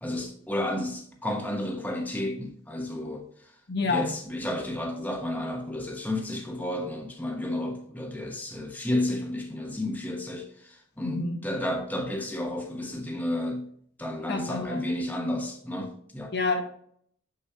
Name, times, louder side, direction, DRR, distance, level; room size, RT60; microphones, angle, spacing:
voice 1, 0.0-3.5 3.8-13.6 14.0-16.3, left 1 dB, 10° left, 0.8 m, -32 dB
voice 2, 3.7-4.1 11.0-11.4 14.3-14.8 16.3-16.6, left 3 dB, 55° left, 0.9 m, -28 dB
6.5 x 6.1 x 2.7 m
head